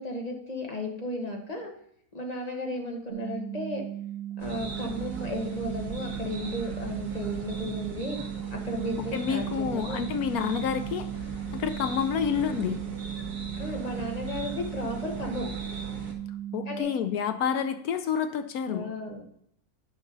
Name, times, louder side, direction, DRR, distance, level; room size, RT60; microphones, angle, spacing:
voice 1, 0.0-1.7 2.1-3.8 4.4-8.2 8.5-10.0 13.6-15.5 16.7-16.9 18.7-19.2, left 1 dB, 25° left, 1 dB, 1.4 m, -34 dB
sound 1, 3.1-16.8, right 11 dB, 45° right, 1.6 m, -37 dB
sound 2, 4.4-16.1, right 3 dB, 90° right, 1.9 m, -39 dB
voice 2, 9.1-11.1 11.5-12.8 16.5-18.9, left 7 dB, 75° left, 9 dB, 1.1 m, -29 dB
9.1 x 6.1 x 3.9 m, 0.68 s
omnidirectional pair, 1.6 m